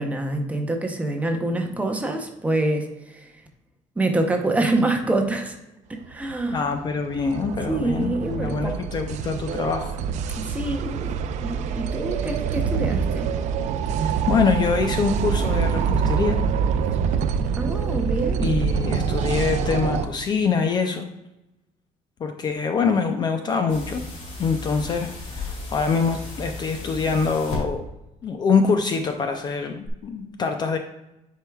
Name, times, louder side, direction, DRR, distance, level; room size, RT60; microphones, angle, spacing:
voice 1, 0.0-3.3 4.0-5.6 5.9-6.6 7.7-8.8 10.5-13.3 17.6-18.6, right 2 dB, 10° right, 4 dB, 0.7 m, -26 dB
sound 1, 6.1-20.1, right 6 dB, 60° right, 0.4 m, -25 dB
voice 2, 6.5-9.9 14.0-16.4 18.4-21.1 22.2-24.0 24.4-27.8 28.2-30.8, left 5 dB, 30° left, 6 dB, 0.4 m, -24 dB
sound 2, 23.7-27.6 29.8-29.9, left 3 dB, 50° left, 2.2 m, -35 dB
9.9 x 4.6 x 2.3 m, 0.93 s
cardioid pair, 165°, 14 cm